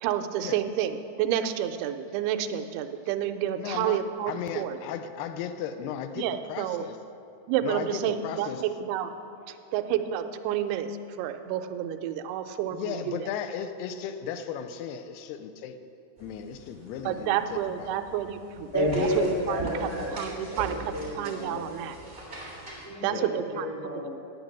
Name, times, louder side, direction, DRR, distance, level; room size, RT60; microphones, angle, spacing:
voice 1, 0.0-4.8 6.2-6.8 7.5-9.1 9.5-13.2 17.1-19.6 20.1-20.8 21.2-22.0 23.0-23.7, right 10 dB, 90° right, 8 dB, 2.6 m, -30 dB
voice 2, 3.6-4.0 4.3-7.0 7.6-8.6 12.7-15.8 16.2-18.0 23.0-23.4, left 8 dB, 90° left, 9 dB, 2.7 m, -36 dB
sound 1, 16.2-22.9, right 2 dB, 15° right, 2.8 m, -42 dB
voice 3, 18.7-21.7 22.8-24.1, left 1 dB, 15° left, -8 dB, 3.2 m, -31 dB
9.2 x 9.1 x 7.2 m, 2.7 s
omnidirectional pair, 4.5 m